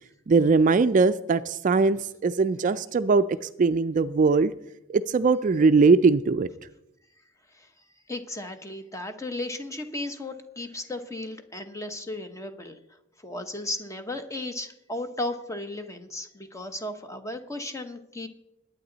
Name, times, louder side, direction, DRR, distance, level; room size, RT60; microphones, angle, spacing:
voice 1, 0.3-3.2 3.6-4.5 4.9-6.5, right 4 dB, 40° right, 12 dB, 0.4 m, -20 dB
voice 2, 8.1-12.8 13.2-18.3, left 2 dB, 15° left, 7 dB, 1.0 m, -35 dB
21.0 x 8.9 x 4.0 m, 0.87 s
head